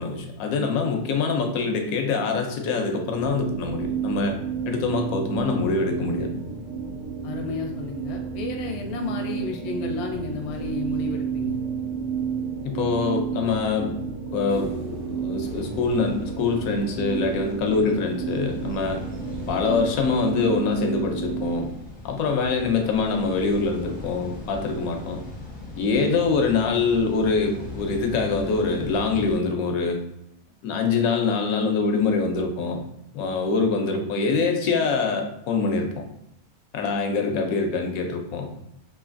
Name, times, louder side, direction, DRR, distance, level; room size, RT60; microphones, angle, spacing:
voice 1, 0.0-4.3 4.7-6.4 12.6-13.9 14.3-14.7 15.1-19.0 19.5-21.7 22.0-25.2 25.8-30.0 30.6-32.8 33.1-36.0 36.7-38.5, left 4 dB, 85° left, 4 dB, 1.0 m, -24 dB
sound 1, 3.1-21.7, right 6 dB, 65° right, 0.9 m, -31 dB
voice 2, 7.2-11.6 26.1-26.3, left 4 dB, 65° left, 2 dB, 0.7 m, -32 dB
sound 2, 14.5-17.8 20.3-20.4, left 1 dB, 35° right, 0.8 m, -41 dB
sound 3, 15.4-29.4, left 2 dB, 10° left, 0.5 m, -39 dB
3.1 x 2.6 x 2.5 m, 0.79 s
omnidirectional pair, 1.5 m